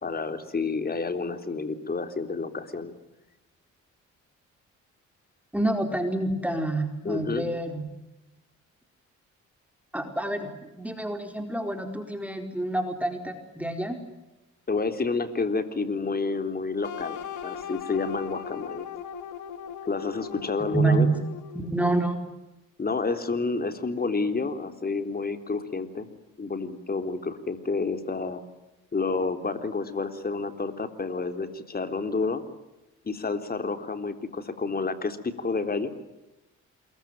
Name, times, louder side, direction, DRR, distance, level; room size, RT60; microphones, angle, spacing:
voice 1, 0.0-2.9 7.0-7.5 14.7-18.9 19.9-21.1 22.8-26.1 26.4-28.4 28.9-32.4 33.0-35.9, left 4 dB, 30° left, 9 dB, 3.7 m, -29 dB
voice 2, 5.5-7.9 9.9-14.0 20.7-21.2 21.5-22.2, right 2 dB, 5° right, 6 dB, 4.5 m, -27 dB
sound 1, 16.8-21.8, left 8 dB, 80° left, 2.9 m, -38 dB
28.5 x 22.5 x 9.2 m, 0.98 s
cardioid pair, 90°, 30 cm